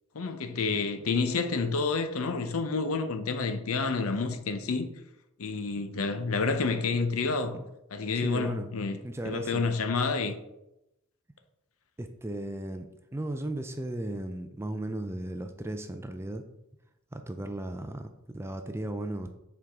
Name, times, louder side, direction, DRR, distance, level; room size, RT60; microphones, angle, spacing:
voice 1, 0.1-4.9 5.4-7.6 7.9-9.0 9.2-10.4, left 4 dB, 75° left, 0.7 m, -29 dB
voice 2, 8.1-8.7 9.0-9.7 12.0-16.4 17.1-19.4, right 1 dB, 10° right, 0.3 m, -36 dB
7.0 x 4.6 x 3.6 m
head